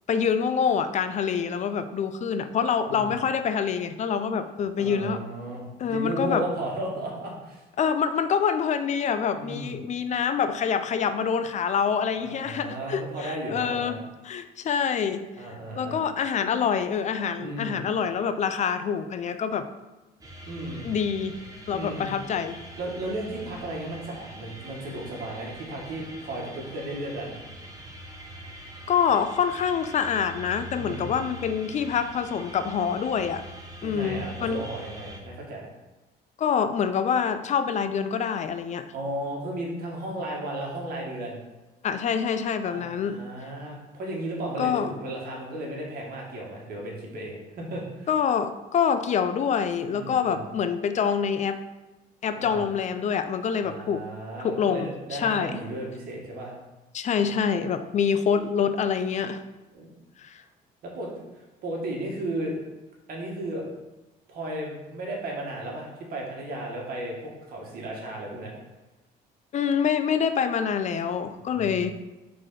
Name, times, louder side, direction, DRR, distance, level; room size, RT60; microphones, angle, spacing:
voice 1, 0.1-5.2 5.8-6.4 7.8-15.3 15.8-19.7 20.8-21.4 21.7-22.6 28.9-33.4 33.8-34.6 36.4-38.9 41.8-43.5 44.6-44.9 48.1-51.6 52.2-54.0 54.4-55.6 56.9-59.4 60.2-60.4 69.5-71.9, left 7 dB, 45° left, 10 dB, 0.4 m, -26 dB
voice 2, 4.8-7.6 9.4-9.8 12.2-14.0 15.4-16.0 17.4-17.8 20.5-20.9 21.7-22.1 22.8-27.4 30.8-31.1 33.8-35.7 38.9-41.4 42.6-48.1 49.9-50.4 52.4-52.6 53.6-56.5 59.7-59.9 60.8-61.1 61.6-62.6 63.1-63.6 64.3-68.5 71.4-71.9, right 1 dB, 60° right, -2 dB, 1.9 m, -34 dB
sound 1, 20.2-35.2, right 1 dB, 20° right, 1.1 m, -43 dB
4.9 x 4.0 x 5.7 m, 1.1 s
cardioid pair, 110°, 17 cm